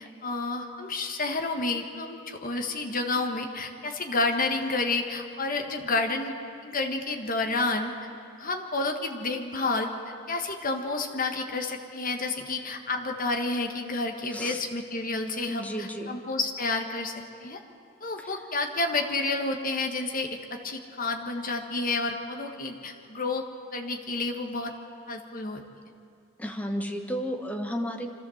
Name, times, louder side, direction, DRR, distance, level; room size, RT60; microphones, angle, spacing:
voice 1, 0.0-6.3 6.6-7.9 8.4-9.9 10.3-17.1 17.4-17.6 18.0-23.4 23.7-24.7 25.1-25.6, left 3 dB, 45° left, 4 dB, 1.6 m, -30 dB
voice 2, 15.5-16.2 18.2-18.3 26.4-28.1, equal, 10° left, 3 dB, 1.3 m, -33 dB
25.5 x 14.0 x 7.3 m, 2.4 s
head